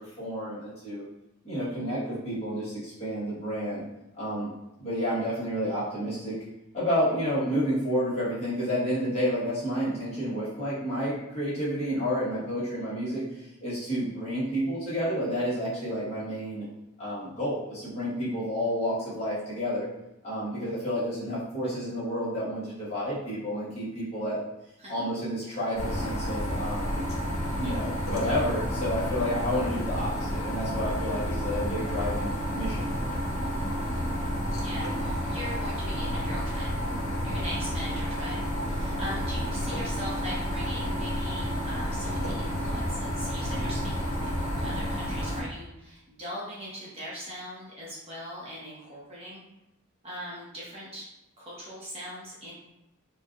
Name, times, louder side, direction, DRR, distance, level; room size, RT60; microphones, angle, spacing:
voice 1, 0.2-1.0 1.4-3.8 4.2-4.5 4.8-6.4 6.7-16.6 17.0-19.8 20.2-24.4 24.9-27.0 27.6-33.2, equal, 30° left, -10 dB, 1.4 m, -30 dB
sound 1, 25.8-45.4, equal, 75° left, 0.7 m, -30 dB
voice 2, 34.6-36.7 37.2-49.4 50.0-51.1 51.4-52.5, equal, 25° right, -7 dB, 0.9 m, -40 dB
4.5 x 2.4 x 2.5 m, 0.93 s
head